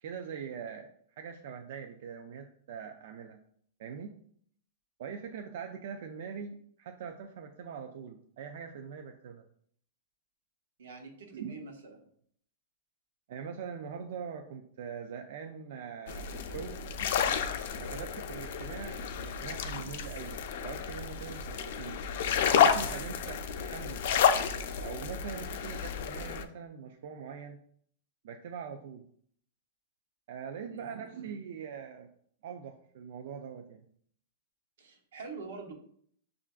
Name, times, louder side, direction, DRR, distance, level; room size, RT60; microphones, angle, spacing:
voice 1, 0.0-3.4 3.8-4.1 5.0-9.5 11.3-11.5 13.3-16.8 17.8-20.4 20.6-24.1 24.8-27.6 28.2-29.0 30.3-32.1 32.4-33.8, right 7 dB, 60° right, 4 dB, 0.3 m, -42 dB
voice 2, 10.8-12.0 30.6-30.9 34.8-35.7, right 4 dB, 90° right, 2 dB, 0.9 m, -45 dB
sound 1, 16.1-26.4, left 7 dB, 55° left, 0.3 m, -31 dB
5.6 x 2.4 x 2.3 m, 0.63 s
supercardioid pair, 160°, 0 cm